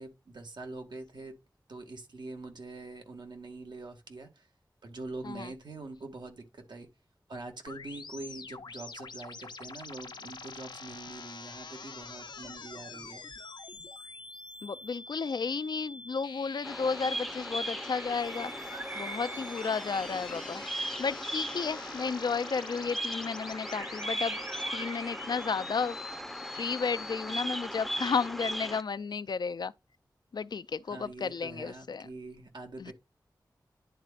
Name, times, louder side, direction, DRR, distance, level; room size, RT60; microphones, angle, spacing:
voice 1, 0.0-1.4 1.7-4.5 4.8-6.9 7.3-13.2 30.9-32.9, right 3 dB, 80° right, 1.8 m, -44 dB
sound 1, 7.7-27.4, left 4 dB, 90° left, 0.8 m, -45 dB
voice 2, 14.6-24.4 24.7-26.0 26.5-29.7 30.3-32.1 32.8-32.9, left 5 dB, 70° left, 0.4 m, -33 dB
Bird vocalization bird call bird song, 16.6-28.8, equal, ahead, 0.6 m, -38 dB
sound 2, 17.7-20.5 23.4-25.8, right 3 dB, 30° right, 1.0 m, -44 dB
11.0 x 4.1 x 2.4 m
wide cardioid pair, 75°, 7 cm